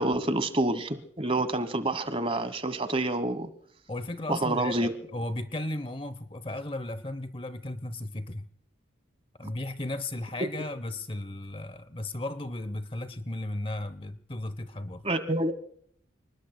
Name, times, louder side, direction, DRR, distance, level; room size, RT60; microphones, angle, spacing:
voice 1, 0.0-3.5 4.3-4.9 9.4-9.5 15.0-15.5, right 2 dB, 30° right, 1.1 m, -28 dB
voice 2, 3.9-8.5 9.4-15.0, left 1 dB, 25° left, 0.7 m, -35 dB
29.5 x 20.0 x 2.2 m
head